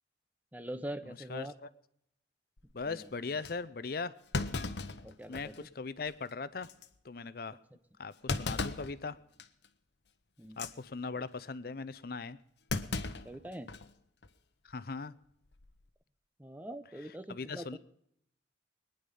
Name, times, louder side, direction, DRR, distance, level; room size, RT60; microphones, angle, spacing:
voice 1, 0.5-1.5 2.8-3.1 5.0-5.7 10.4-10.6 13.2-13.7 16.4-17.8, right 1 dB, 10° right, 11 dB, 0.6 m, -43 dB
voice 2, 1.1-1.5 2.7-4.1 5.3-6.7 7.0-7.6 8.0-9.2 10.6-12.4 14.6-15.1 17.3-17.8, left 4 dB, 55° left, 15 dB, 0.6 m, -39 dB
Thump thud, 2.6-2.9 3.4-3.5 4.3-5.7 6.1-6.2 6.6-6.9 8.3-8.9 9.4-9.7 10.4-10.7 12.7-13.9 14.2-14.3 15.5-15.8, left 3 dB, 70° left, 0.9 m, -36 dB
22.5 x 10.0 x 5.4 m, 0.72 s
head